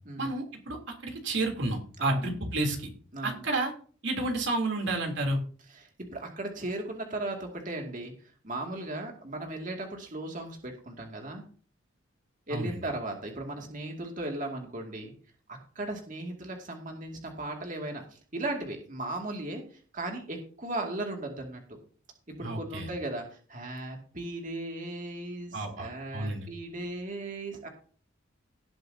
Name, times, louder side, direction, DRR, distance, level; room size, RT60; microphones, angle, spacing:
voice 1, 0.2-0.8 1.0-2.9 3.2-3.7 4.0-5.4 12.5-12.8 22.4-22.9 25.5-26.5, right 2 dB, 60° right, 1 dB, 3.3 m, -30 dB
voice 2, 2.0-2.3 3.1-3.4 5.7-8.1 8.4-11.4 12.5-15.1 15.5-21.8 22.3-27.7, right 2 dB, 40° right, 2 dB, 2.4 m, -37 dB
18.0 x 7.8 x 2.8 m, 0.42 s
head